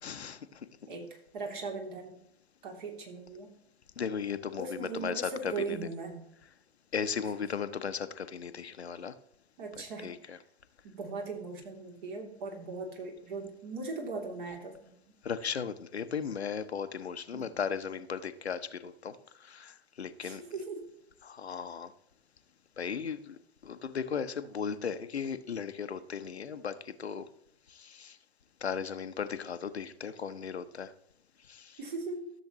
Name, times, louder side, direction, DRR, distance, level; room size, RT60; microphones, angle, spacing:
voice 1, 0.0-0.4 4.0-5.9 6.9-9.1 9.8-10.4 15.2-19.1 19.4-20.4 21.2-21.9 22.8-23.4 23.6-27.3 27.7-28.2 28.6-30.9 31.5-31.8, left 6 dB, 80° left, 11 dB, 0.8 m, -36 dB
voice 2, 0.9-2.2 2.6-3.5 4.6-6.2 9.6-10.3 10.8-14.9 17.3-17.5 20.2-20.8 31.8-32.3, right 4 dB, 50° right, 2 dB, 2.8 m, -39 dB
13.5 x 7.2 x 3.0 m, 0.75 s
figure-of-eight pair, 105°, 32 cm